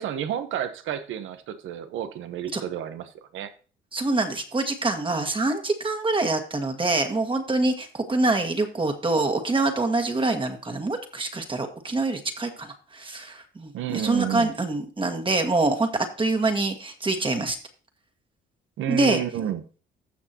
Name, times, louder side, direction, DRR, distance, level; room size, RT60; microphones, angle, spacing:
voice 1, 0.0-3.5 13.7-14.5 18.8-19.6, right 10 dB, 80° right, 10 dB, 1.1 m, -30 dB
voice 2, 3.9-17.6 18.9-19.2, right 2 dB, 25° right, 5 dB, 1.8 m, -25 dB
15.0 x 6.1 x 2.9 m, 0.38 s
cardioid pair, 90°, 20 cm